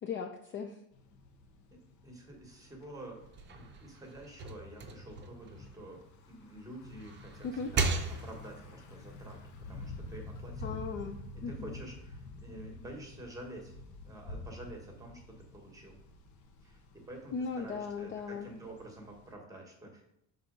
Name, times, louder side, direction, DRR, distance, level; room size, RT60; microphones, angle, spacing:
voice 1, 0.0-0.8 7.4-7.7 10.6-11.8 17.3-18.5, left 5 dB, 35° left, 4 dB, 0.4 m, -38 dB
Thunder / Bicycle, 0.9-19.3, left 2 dB, 50° left, 1.0 m, -49 dB
voice 2, 1.7-3.3 3.5-9.4 9.7-10.8 11.3-13.7 14.0-16.0 16.6-20.1, right 1 dB, 10° right, 1 dB, 1.3 m, -49 dB
sound 1, 3.2-6.4 6.8-8.6, right 4 dB, 30° right, 0.6 m, -37 dB
6.0 x 4.0 x 5.1 m, 0.78 s
cardioid pair, 165°, 37 cm